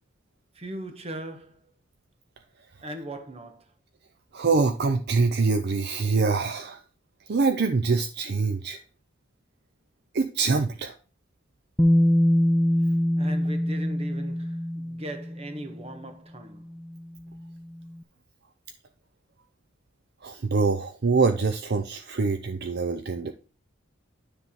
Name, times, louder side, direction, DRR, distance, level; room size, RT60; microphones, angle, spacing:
voice 1, 0.5-1.7 2.8-3.6 13.2-16.7, right 1 dB, 30° right, 1.2 m, -39 dB
voice 2, 4.3-6.8 7.3-8.8 10.1-10.9 20.2-23.3, right 4 dB, 55° right, 0.6 m, -24 dB
Bass guitar, 11.8-15.7 16.9-17.0, equal, ahead, 0.3 m, -23 dB
9.6 x 3.6 x 5.8 m
head